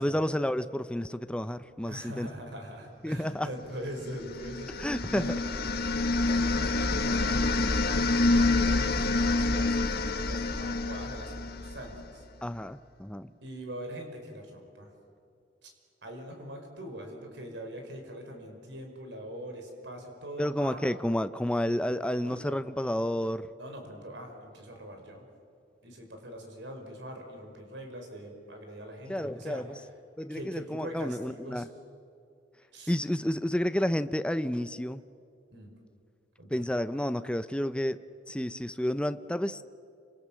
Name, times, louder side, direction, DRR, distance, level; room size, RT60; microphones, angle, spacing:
voice 1, 0.0-2.3 3.0-3.5 4.8-5.3 12.4-13.3 20.4-23.5 29.1-29.7 30.2-31.7 32.9-35.0 36.5-38.0 38.3-39.6, left 1 dB, 5° left, 11 dB, 0.6 m, -30 dB
voice 2, 1.8-5.4 6.3-7.8 8.2-12.2 13.4-14.9 15.6-15.7 16.0-20.8 22.2-22.6 23.6-25.3 25.8-29.6 30.3-31.7 32.7-32.9 35.5-35.7 36.4-36.7, right 1 dB, 70° right, 3 dB, 5.6 m, -42 dB
sound 1, 4.1-12.1, left 2 dB, 60° left, 1.4 m, -27 dB
29.5 x 27.0 x 7.6 m, 2.5 s
head